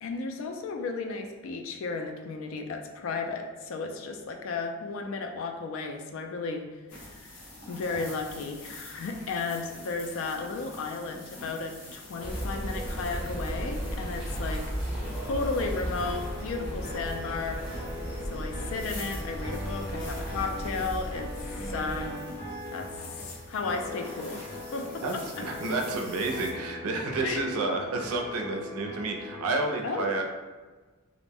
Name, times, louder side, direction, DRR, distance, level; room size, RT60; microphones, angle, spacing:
voice 1, 0.0-6.6 7.0-7.4 7.7-14.6 15.2-17.6 18.3-21.3 21.7-22.1 22.7-22.9 23.3-24.4 24.7-25.4 27.2-27.4 29.8-30.1, left 4 dB, 65° left, 4 dB, 0.3 m, -34 dB
sound 1, 6.9-26.5, left 1 dB, 85° left, 0.9 m, -46 dB
sound 2, 12.2-22.1, equal, 5° right, 0.6 m, -35 dB
sound 3, 15.9-29.7, left 2 dB, 40° left, 0.7 m, -41 dB
voice 2, 25.4-30.2, right 3 dB, 80° right, 3 dB, 0.4 m, -30 dB
2.4 x 2.0 x 3.3 m, 1.3 s
head